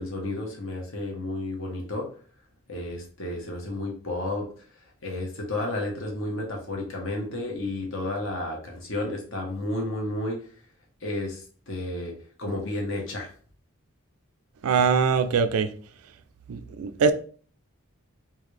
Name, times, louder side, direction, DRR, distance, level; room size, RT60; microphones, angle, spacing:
voice 1, 0.0-2.1 2.7-4.5 5.0-10.4 11.0-12.1 12.4-13.3, left 1 dB, 60° left, 1.1 m, -32 dB
voice 2, 14.6-15.7 16.5-17.1, right 5 dB, 80° right, 0.4 m, -22 dB
3.8 x 2.4 x 3.2 m
head